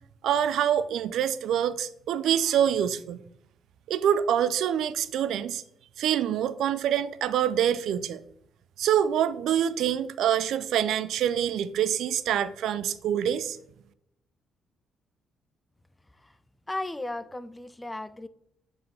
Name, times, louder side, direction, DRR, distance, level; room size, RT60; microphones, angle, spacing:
voice 1, 0.2-3.2 3.9-5.6 6.0-8.2 8.8-13.6, right 9 dB, 80° right, 15 dB, 0.4 m, -26 dB
voice 2, 16.7-18.3, left 2 dB, 10° left, 14 dB, 0.4 m, -35 dB
6.6 x 4.4 x 3.3 m, 0.73 s
cardioid pair, 90°, 0 cm